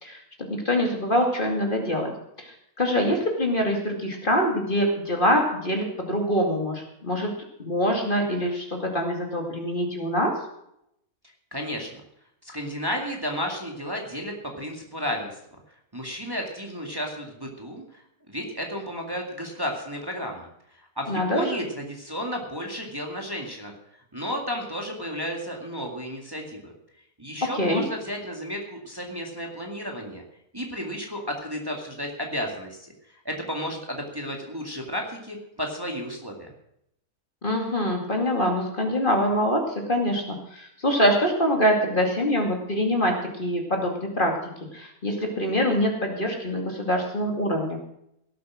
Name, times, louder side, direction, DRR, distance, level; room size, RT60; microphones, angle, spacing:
voice 1, 0.5-2.1 2.4-2.5 2.8-7.3 7.6-10.3 21.1-21.6 27.4-27.8 37.4-39.6 39.9-44.3 44.7-47.8, equal, 35° left, 2 dB, 2.5 m, -24 dB
voice 2, 11.5-11.9 12.4-15.4 15.9-18.0 18.3-23.7 24.1-26.7 27.2-30.2 30.5-32.9 33.2-36.5, equal, 15° right, 1 dB, 2.3 m, -33 dB
17.5 x 8.4 x 6.2 m, 0.76 s
omnidirectional pair, 1.6 m